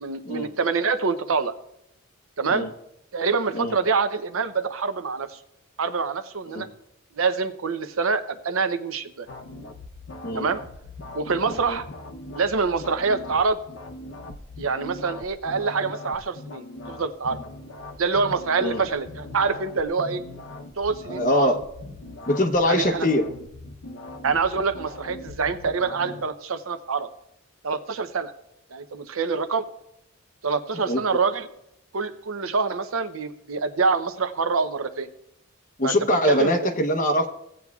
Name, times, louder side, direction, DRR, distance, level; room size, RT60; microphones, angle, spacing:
voice 1, 0.0-1.5 2.4-2.6 3.1-5.4 5.8-6.7 7.2-9.3 10.3-10.6 11.1-11.9 12.3-13.6 14.6-17.4 18.0-20.2 20.8-21.6 22.7-23.1 24.2-27.1 27.6-28.3 28.7-29.7 30.4-31.5 31.9-35.1 35.8-36.0 36.3-36.5, right 4 dB, 85° right, 10 dB, 0.7 m, -25 dB
sound 1, 9.3-26.3, left 2 dB, 70° left, 0.8 m, -40 dB
voice 2, 11.5-11.8 18.6-18.8 21.1-21.6 22.3-23.3 30.9-31.2 35.8-37.3, left 1 dB, 40° left, 6 dB, 0.9 m, -23 dB
16.5 x 8.4 x 2.4 m, 0.79 s
head